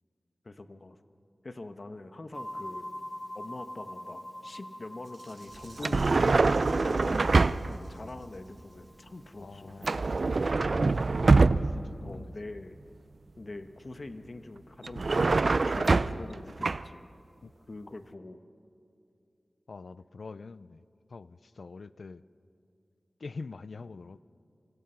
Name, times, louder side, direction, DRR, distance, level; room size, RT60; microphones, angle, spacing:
voice 1, 0.4-1.0 1.4-2.9 3.3-10.0 12.0-12.8 13.4-17.1 17.7-18.4, left 2 dB, 55° left, 9 dB, 1.3 m, -44 dB
sound 1, 2.3-10.5, left 1 dB, ahead, 2.4 m, -45 dB
Rattle (instrument), 5.0-8.9, right 3 dB, 90° right, 4.8 m, -57 dB
sound 2, 5.8-7.9 9.8-11.9 14.8-16.3 16.6-16.8, right 3 dB, 70° right, 0.5 m, -24 dB
voice 2, 9.4-10.4 10.7-12.3 17.4-17.5 19.7-20.8 21.1-22.2 23.2-24.2, left 4 dB, 85° left, 17 dB, 0.5 m, -45 dB
27.0 x 26.0 x 5.8 m, 2.5 s
cardioid pair, 40°, 0 cm